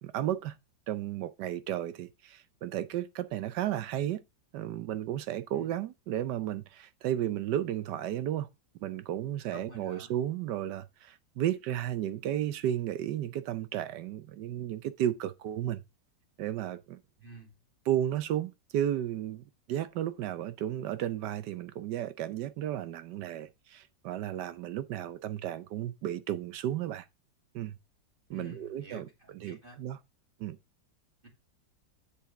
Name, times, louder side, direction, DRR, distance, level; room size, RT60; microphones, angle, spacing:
voice 1, 0.0-0.5 0.9-4.2 4.5-8.5 8.8-15.8 16.4-17.0 17.8-27.1 27.5-27.8 28.3-29.1 29.3-30.0 30.4-30.6, right 11 dB, 70° right, 1.2 m, -33 dB
voice 2, 9.5-10.1 17.2-17.5 28.3-29.8, right 1 dB, 30° right, 2.6 m, -48 dB
7.3 x 7.2 x 3.5 m
omnidirectional pair, 2.0 m